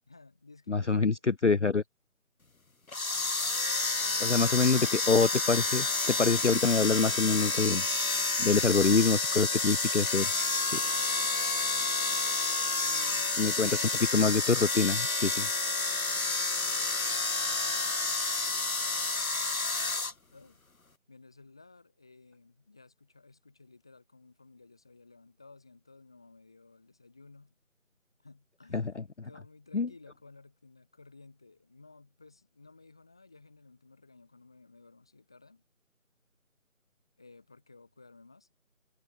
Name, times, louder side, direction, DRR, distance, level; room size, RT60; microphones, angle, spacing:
voice 1, 0.1-1.2 4.0-4.7 8.4-9.6 10.8-12.5 12.8-14.0 15.8-19.8 20.3-20.6 21.1-27.6 28.2-35.6 37.2-38.5, left 3 dB, 5° left, 2.6 m, -56 dB
voice 2, 0.7-1.8 4.2-7.8 8.4-10.3 10.6-10.8 13.4-13.8 14.1-15.5 28.7-29.3 29.7-29.9, left 4 dB, 60° left, 0.5 m, -26 dB
sound 1, 2.9-20.1, left 3 dB, 80° left, 1.4 m, -29 dB
figure-of-eight pair, 170°, 42 cm